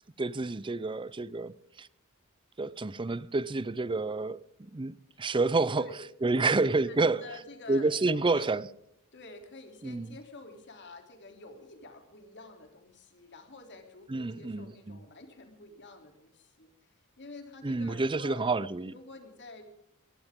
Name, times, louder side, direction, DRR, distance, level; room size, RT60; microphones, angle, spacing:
voice 1, 0.2-1.9 2.6-4.4 4.7-5.9 6.2-7.2 7.7-8.6 9.8-10.1 14.1-15.0 17.6-18.9, right 3 dB, 20° right, 0.5 m, -29 dB
voice 2, 6.5-8.5 9.1-18.5 18.9-19.7, left 2 dB, 55° left, 3.2 m, -49 dB
22.0 x 16.0 x 3.7 m
head